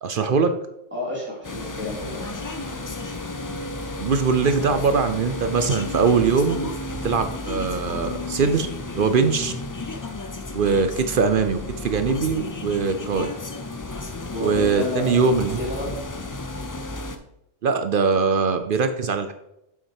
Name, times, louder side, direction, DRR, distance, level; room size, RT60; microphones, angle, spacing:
voice 1, 0.0-0.5 4.0-6.7 7.0-8.7 8.9-9.5 10.5-13.3 14.4-15.6 17.6-19.3, right 5 dB, 55° right, 9 dB, 0.7 m, -21 dB
voice 2, 0.9-2.4 14.3-16.0, left 1 dB, 10° right, -6 dB, 3.2 m, -31 dB
sound 1, 1.4-17.2, left 2 dB, 30° left, 0.3 m, -32 dB
7.2 x 5.8 x 4.7 m, 0.84 s
omnidirectional pair, 1.3 m